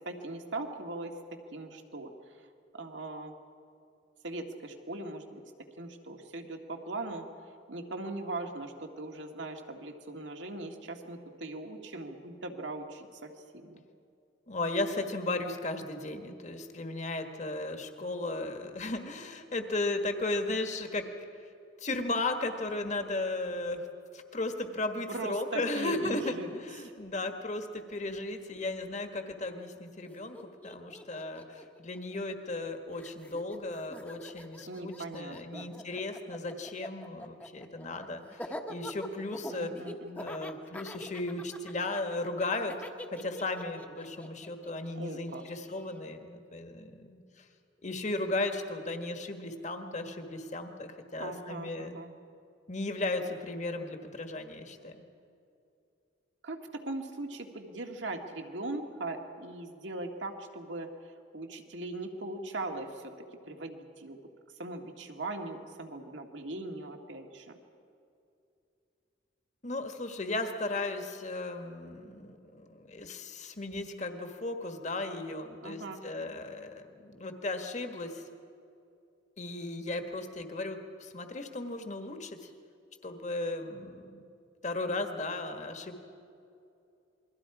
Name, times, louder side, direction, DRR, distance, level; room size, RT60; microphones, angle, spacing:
voice 1, 0.0-2.1 2.4-2.5 2.7-3.3 4.2-5.4 5.8-7.3 7.7-13.8 25.1-26.5 26.8-26.9 34.7-35.7 39.5-40.3 44.9-45.4 51.2-52.1 56.4-63.1 63.5-64.2 64.6-67.6 75.6-76.0, right 2 dB, 80° right, 3 dB, 2.0 m, -40 dB
voice 2, 14.5-21.0 21.8-23.9 24.1-30.4 30.6-39.7 40.2-42.7 43.1-47.4 47.8-52.0 52.7-55.0 69.6-78.2 79.4-82.5 83.0-84.2 84.6-86.0, left 2 dB, 40° left, 6 dB, 1.7 m, -35 dB
Laughter, 30.0-30.1 30.3-32.7 33.0-46.0, equal, 10° left, 1.1 m, -45 dB
28.5 x 22.5 x 4.9 m, 2.6 s
head